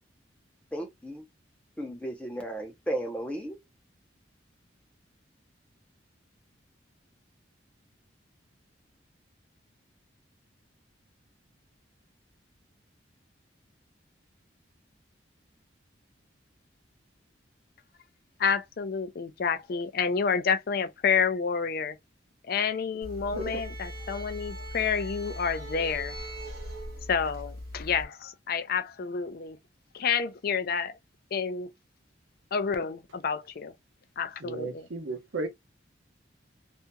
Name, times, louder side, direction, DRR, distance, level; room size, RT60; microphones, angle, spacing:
voice 1, 0.7-1.3 1.8-3.6, right 1 dB, 5° left, 0.6 m, -34 dB
voice 2, 18.4-22.0 22.5-26.1 27.1-29.6 29.9-30.9 31.3-31.7 32.5-33.7 34.2-34.9, left 6 dB, 55° left, 0.4 m, -29 dB
sound 1, 23.0-28.0, equal, 55° right, 1.0 m, -39 dB
voice 3, 34.4-35.5, right 3 dB, 90° right, 0.8 m, -34 dB
2.8 x 2.5 x 2.2 m
head